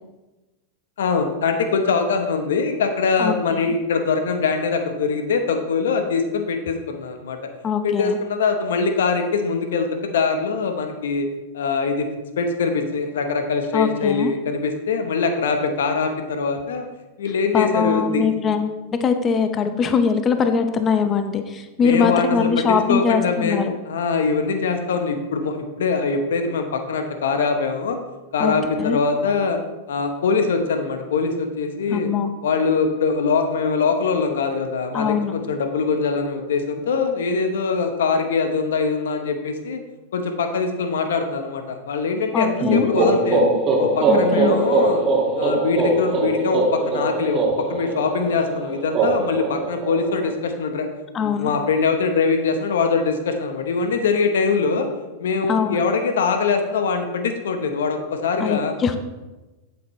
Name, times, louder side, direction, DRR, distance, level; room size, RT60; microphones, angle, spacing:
voice 1, 1.0-7.4 7.8-11.3 11.5-12.1 12.4-16.8 17.2-18.3 21.8-28.0 28.3-29.6 29.9-32.1 32.4-39.8 40.1-43.5 43.8-45.0 45.4-50.9 51.2-54.9 55.2-58.7, left 4 dB, 80° left, 6 dB, 1.0 m, -22 dB
voice 2, 3.2-3.6 7.6-8.2 13.7-14.3 17.5-23.7 28.4-29.0 31.9-32.3 34.9-35.3 42.3-42.9 44.1-44.6 51.1-51.5 55.5-55.8 58.4-58.9, left 6 dB, 30° left, 8 dB, 0.7 m, -22 dB
sound 1, 42.6-50.3, right 2 dB, 35° right, 1.8 m, -21 dB
8.4 x 8.0 x 3.2 m, 1.1 s
hypercardioid pair, 110°, 0 cm